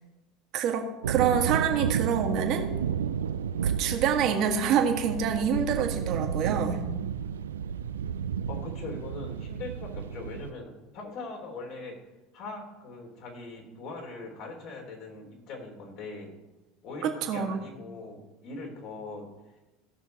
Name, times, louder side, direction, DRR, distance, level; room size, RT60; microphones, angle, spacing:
voice 1, 0.5-2.7 3.6-6.8 17.0-17.6, right 7 dB, 55° right, 5 dB, 1.7 m, -27 dB
sound 1, 1.0-10.5, right 8 dB, 90° right, 0.3 m, -32 dB
voice 2, 8.5-12.0 12.3-16.3 16.8-19.3, left 3 dB, 60° left, 0 dB, 3.6 m, -41 dB
15.5 x 6.3 x 4.2 m, 1.0 s
hypercardioid pair, 80°, 0 cm